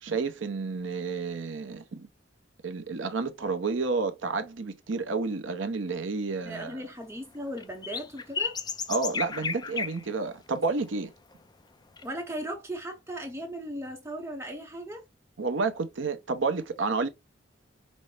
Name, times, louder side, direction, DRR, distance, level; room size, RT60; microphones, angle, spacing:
voice 1, 0.0-2.1 2.6-6.9 8.9-11.1 15.4-17.1, right 4 dB, 75° right, 0.7 m, -30 dB
voice 2, 6.4-8.6 12.0-15.0, right 1 dB, 15° right, 0.7 m, -37 dB
sound 1, 7.6-10.0 10.6-10.7 12.0-12.1, left 5 dB, 20° left, 0.4 m, -33 dB
5.2 x 2.1 x 3.2 m
head